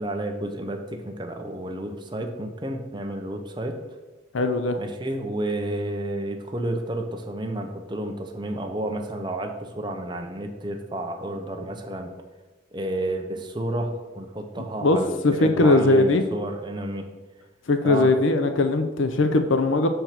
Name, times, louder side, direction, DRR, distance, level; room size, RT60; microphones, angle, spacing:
voice 1, 0.0-4.0 4.8-12.1 12.7-17.1 17.8-18.1, right 1 dB, 25° right, 4 dB, 0.8 m, -31 dB
voice 2, 4.3-4.8 14.8-16.2 17.7-19.9, left 2 dB, 90° left, 8 dB, 0.6 m, -20 dB
6.7 x 4.5 x 5.8 m, 1.2 s
head